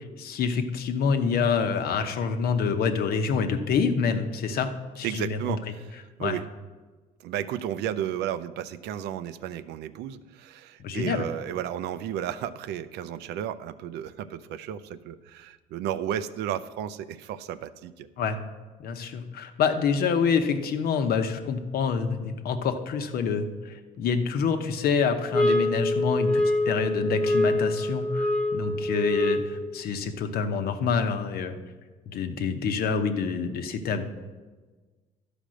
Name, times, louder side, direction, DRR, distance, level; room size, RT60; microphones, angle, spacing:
voice 1, 0.2-5.4 6.2-6.4 10.8-11.2 18.2-18.4 18.8-31.6 32.1-34.0, left 6 dB, 65° left, 7 dB, 0.9 m, -27 dB
voice 2, 5.0-6.4 7.2-18.1, right 10 dB, 80° right, 13 dB, 0.5 m, -33 dB
sound 1, 25.3-29.7, left 1 dB, 5° left, 0.8 m, -25 dB
12.0 x 5.1 x 6.4 m, 1.3 s
cardioid pair, 110°, 17 cm